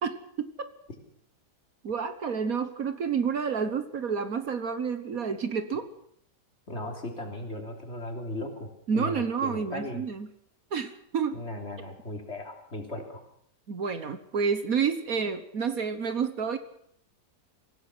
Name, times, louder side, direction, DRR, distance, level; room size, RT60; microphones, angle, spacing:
voice 1, 0.0-0.7 1.8-5.9 8.9-10.3 10.7-11.4 13.7-16.6, right 6 dB, 60° right, 9 dB, 1.6 m, -29 dB
voice 2, 6.7-8.7 8.9-10.0 11.3-13.2, left 1 dB, 40° left, 2 dB, 3.5 m, -37 dB
25.5 x 16.5 x 6.2 m, 0.67 s
omnidirectional pair, 1.8 m